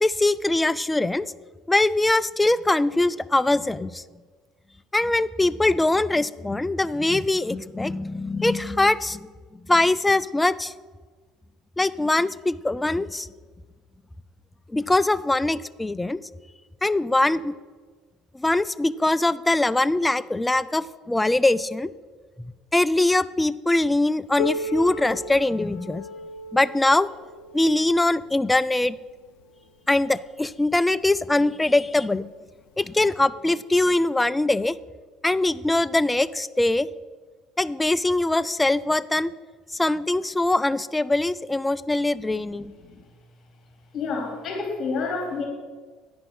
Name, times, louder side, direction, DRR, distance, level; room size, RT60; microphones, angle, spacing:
voice 1, 0.0-1.3 1.7-4.0 4.9-9.3 9.7-10.7 11.8-13.3 14.7-16.2 16.8-17.5 18.3-21.9 22.4-26.0 26.5-27.1 27.5-29.0 29.9-32.3 32.8-34.8 35.2-36.9 37.6-39.3 39.8-42.7, left 2 dB, 10° left, 17 dB, 0.3 m, -22 dB
Piano, 24.4-29.7 30.6-30.7 31.2-31.3 32.1-32.2 33.2-33.3, left 3 dB, 85° left, 0.5 m, -36 dB
voice 2, 43.9-45.5, left 4 dB, 45° left, 1 dB, 3.1 m, -29 dB
9.8 x 5.2 x 6.1 m, 1.4 s
supercardioid pair, 90°, 0 cm